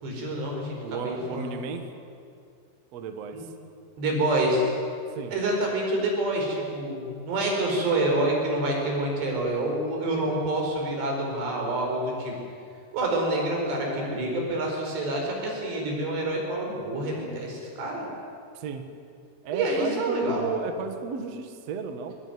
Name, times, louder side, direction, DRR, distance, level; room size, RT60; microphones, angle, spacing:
voice 1, 0.0-1.6 3.3-3.4 4.0-4.7 5.3-12.3 12.9-18.1 19.5-20.4, right 1 dB, 85° right, 0 dB, 7.1 m, -27 dB
voice 2, 0.8-1.8 2.9-3.5 5.2-5.3 18.5-18.9 19.4-22.1, right 6 dB, 55° right, 7 dB, 2.0 m, -33 dB
22.0 x 21.5 x 9.6 m, 2.4 s
omnidirectional pair, 4.7 m